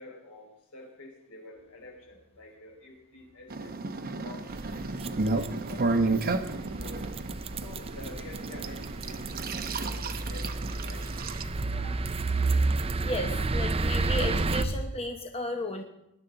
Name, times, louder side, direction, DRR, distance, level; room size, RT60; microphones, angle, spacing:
voice 1, 0.0-4.5 5.3-7.1 7.6-9.3 9.6-12.0, left 2 dB, 80° left, -1 dB, 4.9 m, -49 dB
sound 1, 1.6-2.8 3.1-14.8, right 1 dB, 85° right, 1.6 m, -44 dB
sound 2, 3.5-11.4, right 3 dB, 45° right, 0.8 m, -32 dB
sound 3, 4.5-14.6, right 3 dB, 25° right, 0.5 m, -31 dB
voice 2, 13.0-15.8, left 1 dB, 25° left, 3 dB, 0.9 m, -34 dB
19.5 x 11.0 x 3.8 m, 0.83 s
head